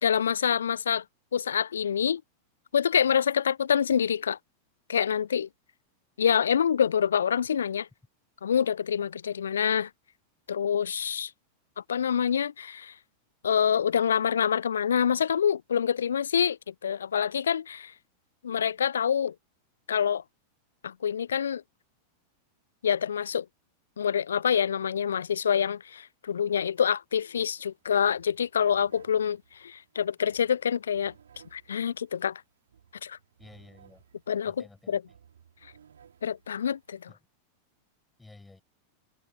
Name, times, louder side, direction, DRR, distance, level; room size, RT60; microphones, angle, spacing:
voice 1, 0.0-1.0 1.3-2.2 2.7-4.4 4.9-5.5 6.2-7.9 8.4-9.9 10.5-11.3 11.9-12.9 13.4-17.9 18.4-19.3 19.9-20.2 20.8-21.6 22.8-23.5 24.0-31.1 31.5-32.4 33.0-33.2 34.3-34.5 34.9-35.0 36.2-37.1, left 8 dB, 65° left, 0.6 m, -26 dB
sound 1, 27.5-27.6 27.8-37.1, right 8 dB, 65° right, 3.0 m, -59 dB
voice 2, 33.4-34.0 34.4-35.2 37.1-37.2 38.2-38.6, left 2 dB, 10° left, 7.5 m, -52 dB
figure-of-eight pair, 90°, 0 cm